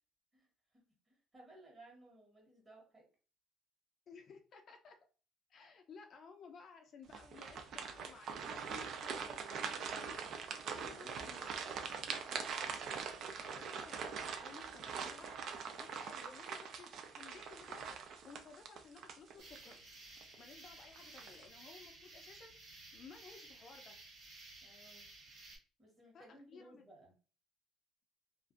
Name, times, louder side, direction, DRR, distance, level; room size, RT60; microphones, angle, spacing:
voice 1, 0.3-3.0 10.8-11.8 16.0-16.2 24.6-25.1 25.8-27.1, right 1 dB, 20° right, -2 dB, 1.2 m, -60 dB
voice 2, 4.1-5.0 5.5-10.3 10.7-11.7 13.4-15.4 15.8-18.0 18.2-19.8 20.4-22.5 22.9-24.0 26.1-26.8, left 5 dB, 50° left, 4 dB, 0.4 m, -56 dB
sound 1, 7.1-19.7 20.2-20.4 21.0-21.4, right 6 dB, 55° right, 0.3 m, -43 dB
sound 2, 19.4-25.6, right 2 dB, 80° right, 1.4 m, -55 dB
2.4 x 2.2 x 2.4 m, 0.37 s
cardioid pair, 115°, 0 cm